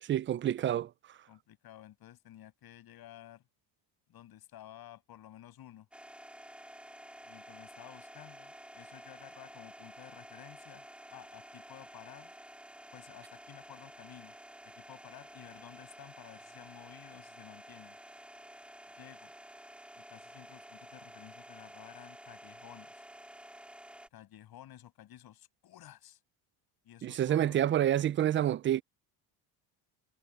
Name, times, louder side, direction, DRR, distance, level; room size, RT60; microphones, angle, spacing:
voice 1, 0.0-1.2 27.0-28.8, right 11 dB, 30° right, 0.3 m, -28 dB
voice 2, 1.3-3.4 4.1-5.9 7.2-12.3 12.9-14.3 14.8-18.0 19.0-19.3 19.9-23.0 24.1-26.2 26.8-27.6, left 12 dB, 55° left, 7.6 m, -53 dB
sound 1, 5.9-24.1, right 1 dB, 5° right, 3.0 m, -51 dB
cardioid pair, 130°, 45 cm